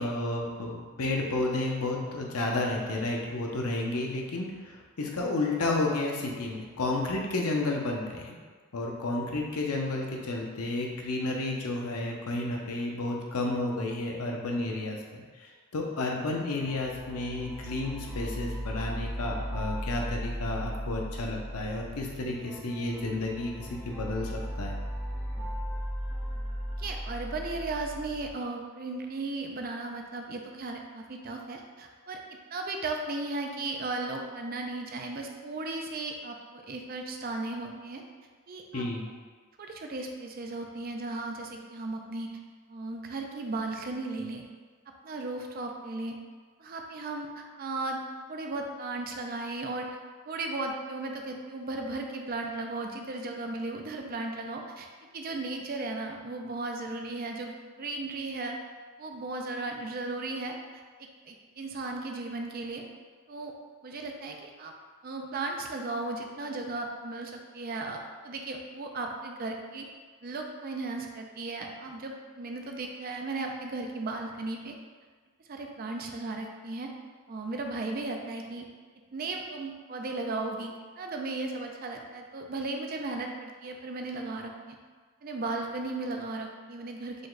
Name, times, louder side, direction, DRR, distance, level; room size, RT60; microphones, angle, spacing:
voice 1, 0.0-8.3 8.7-15.2 15.7-24.7 38.7-39.1, left 2 dB, 85° left, 0 dB, 0.7 m, -31 dB
sound 1, 16.6-28.3, equal, 5° left, 0.7 m, -37 dB
voice 2, 26.8-32.2 32.5-38.0 38.5-38.8 39.6-42.3 42.7-44.4 45.0-46.2 46.6-48.0 48.3-49.9 50.3-54.9 55.1-58.6 59.0-60.6 61.0-62.8 63.3-63.5 63.8-64.7 65.0-69.9 70.2-74.7 75.5-76.9 77.3-78.7 79.1-84.8 85.2-87.2, right 2 dB, 40° right, 2 dB, 0.4 m, -36 dB
5.1 x 2.2 x 3.9 m, 1.5 s
head